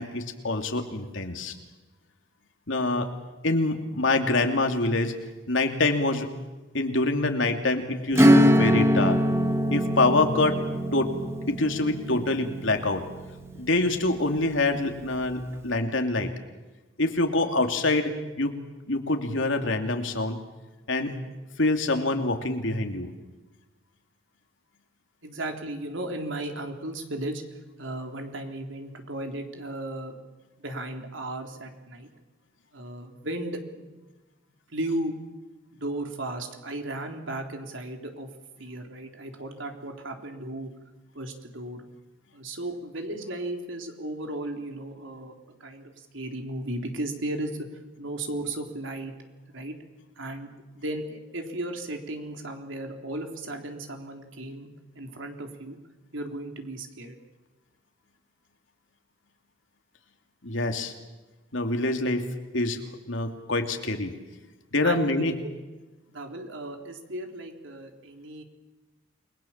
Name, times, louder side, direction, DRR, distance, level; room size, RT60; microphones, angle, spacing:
voice 1, 0.0-1.5 2.7-3.1 3.4-5.1 5.5-6.3 6.7-9.2 9.7-10.6 10.9-11.1 11.5-13.0 13.6-16.3 17.0-18.6 18.9-20.4 20.9-21.1 21.6-23.1 60.4-60.9 61.5-62.2 62.5-62.8 63.1-64.1 64.7-65.3, left 2 dB, 75° left, 5 dB, 2.8 m, -25 dB
Acoustic guitar / Strum, 8.1-14.4, equal, 15° right, 1.3 m, -23 dB
voice 2, 25.2-27.4 27.8-30.1 30.6-32.1 32.7-33.9 34.7-35.1 35.7-38.3 38.6-40.7 41.1-41.8 42.3-45.3 45.6-47.6 48.0-49.1 49.5-49.8 50.2-50.5 50.8-54.7 55.0-55.8 56.1-57.2 64.8-65.1 65.4-65.5 66.1-68.4, right 1 dB, 75° right, 4 dB, 3.7 m, -35 dB
29.0 x 21.5 x 7.4 m, 1.2 s
head